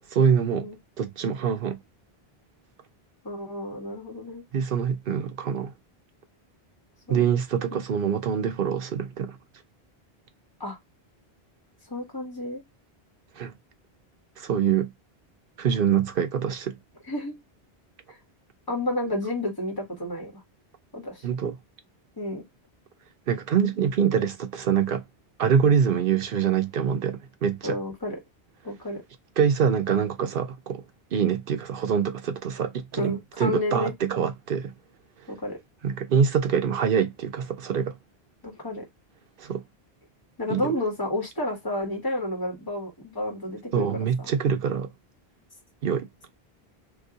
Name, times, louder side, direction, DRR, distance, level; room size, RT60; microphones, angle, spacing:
voice 1, 0.1-0.7 1.0-1.8 4.5-5.7 7.1-9.4 13.4-13.5 14.4-14.9 15.6-16.8 21.2-21.6 23.3-25.0 25.4-27.8 29.4-30.8 31.1-34.7 35.8-38.0 39.4-39.6 40.5-40.7 43.7-44.9 45.8-46.1, right 7 dB, 65° right, 0.8 m, -25 dB
voice 2, 3.2-4.4 7.1-7.2 10.6-10.8 11.9-12.6 17.1-17.3 18.1-18.2 18.7-20.4 20.9-21.2 22.2-22.4 27.6-28.2 28.6-29.0 33.0-33.9 35.3-35.6 38.4-38.8 40.4-44.1, left 1 dB, 20° left, 1.6 m, -31 dB
3.0 x 2.7 x 3.7 m
omnidirectional pair, 1.1 m